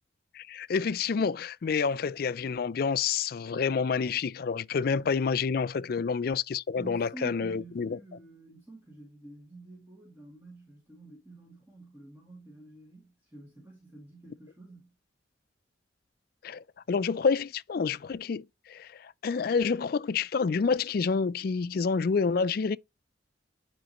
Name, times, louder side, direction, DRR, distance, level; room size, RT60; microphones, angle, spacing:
voice 1, 0.4-8.0 16.4-22.8, left 5 dB, 50° left, 0.4 m, -28 dB
voice 2, 6.8-14.9, right 2 dB, 10° right, 2.3 m, -48 dB
10.5 x 5.1 x 3.0 m
head